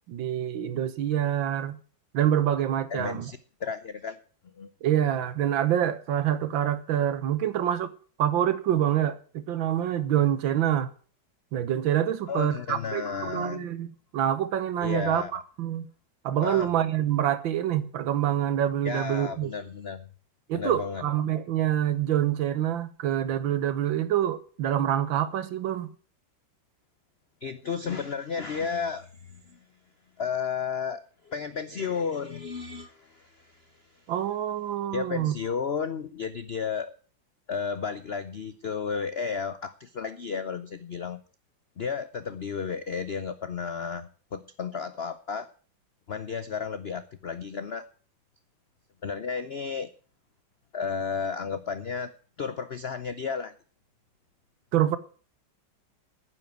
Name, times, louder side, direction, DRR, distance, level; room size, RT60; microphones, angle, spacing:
voice 1, 0.1-1.8 2.1-3.3 4.8-7.9 8.2-10.9 11.5-13.9 14.1-15.8 16.2-19.5 20.5-25.9 34.1-35.4 54.7-55.0, right 11 dB, 80° right, 1.7 m, -26 dB
voice 2, 2.9-4.2 4.6-4.7 12.3-13.7 14.8-15.3 16.4-16.7 18.8-20.1 20.5-21.0 27.4-29.6 30.2-34.0 34.9-36.9 37.5-41.2 41.8-45.5 46.1-47.8 49.0-49.9 50.7-52.1 52.4-53.5, left 6 dB, 70° left, 0.5 m, -33 dB
10.0 x 7.6 x 9.1 m
omnidirectional pair, 2.1 m